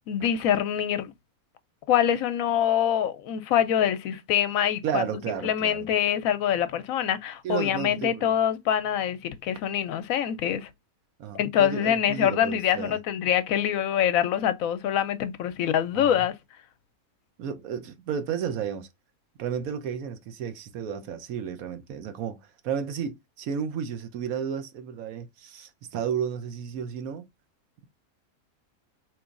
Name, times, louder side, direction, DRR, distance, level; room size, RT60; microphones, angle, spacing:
voice 1, 0.1-1.1 1.9-5.0 5.4-10.7 11.3-16.3, left 10 dB, 75° left, 1.0 m, -25 dB
voice 2, 4.8-5.9 7.4-8.4 11.2-13.0 15.9-16.3 17.4-18.9 19.4-27.3, right 8 dB, 75° right, 1.1 m, -32 dB
4.5 x 3.0 x 2.4 m
omnidirectional pair, 1.5 m